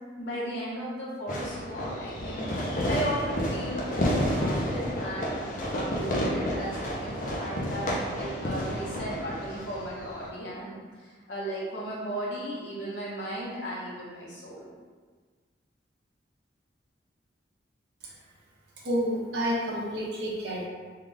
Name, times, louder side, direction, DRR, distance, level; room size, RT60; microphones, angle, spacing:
voice 1, 0.2-14.7, equal, 75° left, -7 dB, 1.1 m, -36 dB
Fireworks, 1.3-10.3, equal, 45° left, 0.5 m, -30 dB
voice 2, 18.8-20.7, equal, 65° right, -5 dB, 0.8 m, -29 dB
3.6 x 2.4 x 3.3 m, 1.5 s
head